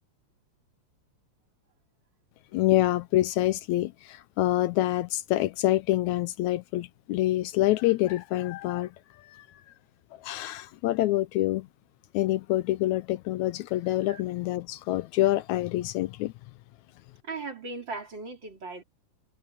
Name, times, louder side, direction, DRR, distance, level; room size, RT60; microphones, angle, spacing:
voice 1, 2.5-8.9 9.3-9.5 10.2-11.7 12.1-16.3, left 15 dB, 80° left, 1.9 m, -26 dB
voice 2, 17.2-18.8, right 3 dB, 40° right, 3.5 m, -37 dB
omnidirectional pair, 3.4 m